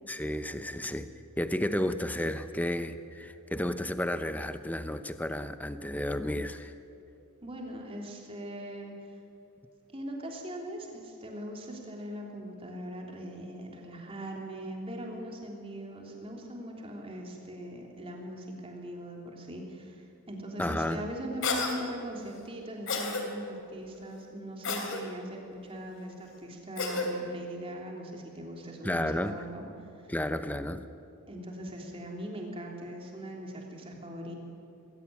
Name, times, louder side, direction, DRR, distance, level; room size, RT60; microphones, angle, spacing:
voice 1, 0.1-1.1 1.4-6.7 20.6-21.0 28.8-29.4 30.1-30.8, left 1 dB, 5° left, 11 dB, 0.7 m, -32 dB
voice 2, 7.4-8.9 9.9-29.6 30.0-30.1 31.3-34.3, equal, 25° right, 0 dB, 3.3 m, -40 dB
Cough, 21.4-21.7 22.9-23.2 24.6-25.0 26.8-27.1, left 4 dB, 60° left, 3.0 m, -30 dB
21.0 x 17.0 x 9.6 m, 2.8 s
head